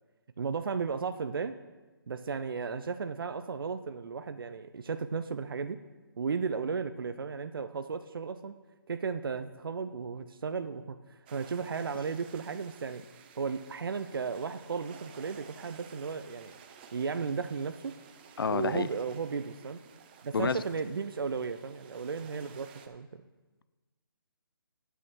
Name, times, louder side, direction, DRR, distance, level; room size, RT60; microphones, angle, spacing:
voice 1, 0.4-1.5 2.1-5.8 6.2-8.6 8.9-13.0 13.4-16.5 16.9-18.0 18.5-19.8 20.2-23.2, right 5 dB, 70° right, 10 dB, 0.5 m, -35 dB
sound 1, 11.3-22.9, right 7 dB, 25° right, 0.6 m, -54 dB
voice 2, 18.4-18.9 20.3-20.6, left 5 dB, 70° left, 16 dB, 0.5 m, -29 dB
8.4 x 5.6 x 6.3 m, 1.2 s
figure-of-eight pair, 150°, 12 cm